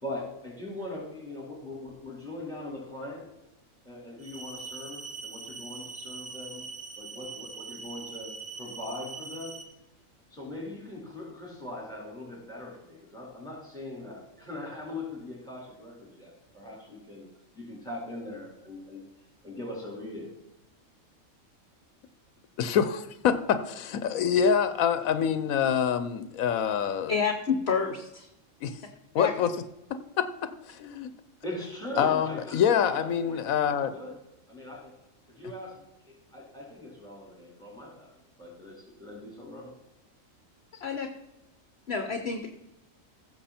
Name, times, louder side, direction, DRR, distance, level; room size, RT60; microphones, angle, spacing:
voice 1, 0.0-3.3 3.8-6.7 7.0-9.6 10.3-17.3 17.5-19.1 19.4-20.3 31.4-34.1 34.5-34.9 35.3-38.1 38.4-39.7, left 1 dB, 5° left, -3 dB, 4.2 m, -41 dB
sound 1, 4.2-9.6, right 4 dB, 90° right, 2.0 m, -42 dB
voice 2, 22.6-27.1 28.6-28.8 29.1-29.5 29.9-31.1 32.0-33.9, left 8 dB, 85° left, 11 dB, 1.1 m, -26 dB
voice 3, 27.1-28.3 29.2-29.3 32.0-32.2 40.8-41.1 41.9-42.5, left 5 dB, 55° left, 6 dB, 1.1 m, -29 dB
15.5 x 6.7 x 4.3 m, 0.91 s
omnidirectional pair, 1.4 m